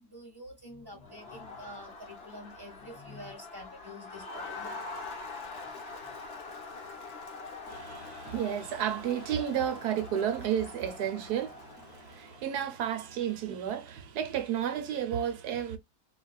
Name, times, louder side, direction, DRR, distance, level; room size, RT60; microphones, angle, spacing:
voice 1, 0.0-4.8, left 1 dB, 15° right, 1.1 m, -47 dB
Crowd, 0.9-13.5, left 3 dB, 55° left, 0.7 m, -44 dB
voice 2, 7.7-15.8, right 9 dB, 70° right, 1.1 m, -32 dB
3.9 x 2.3 x 2.2 m
omnidirectional pair, 1.9 m